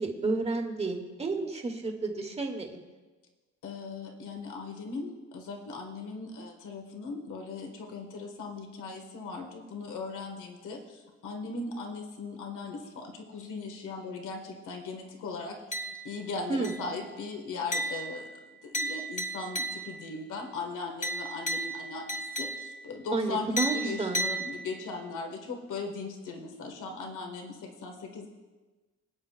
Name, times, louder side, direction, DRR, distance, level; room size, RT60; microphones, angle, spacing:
voice 1, 0.0-2.8 16.5-16.7 23.1-24.3, right 3 dB, 20° right, 4 dB, 1.2 m, -31 dB
voice 2, 3.6-18.4 18.6-28.3, left 4 dB, 90° left, 2 dB, 1.7 m, -39 dB
sound 1, 15.7-16.3 16.6-17.1 17.7-20.1 21.0-22.9 23.6-25.0, right 1 dB, 25° left, 1.3 m, -34 dB
25.5 x 9.3 x 2.4 m, 1.3 s
wide cardioid pair, 170°, 30 cm